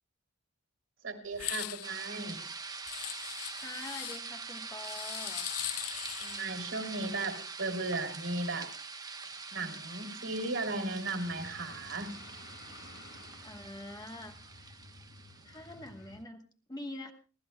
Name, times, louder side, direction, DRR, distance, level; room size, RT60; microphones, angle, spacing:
voice 1, 1.0-2.4 6.2-8.7 9.5-12.1, right 2 dB, 55° right, 3 dB, 3.0 m, -36 dB
sound 1, 1.3-1.9 2.9-4.2 4.8-6.5, left 15 dB, 85° left, 0.7 m, -39 dB
sound 2, 1.8-15.9, right 4 dB, 15° right, 0.9 m, -44 dB
voice 2, 3.6-5.6 6.3-6.4 13.4-14.8 15.4-17.1, left 2 dB, 15° left, 4 dB, 1.1 m, -45 dB
sound 3, 11.2-16.2, left 2 dB, 55° left, 5.4 m, -53 dB
30.0 x 13.0 x 2.2 m, 0.37 s
head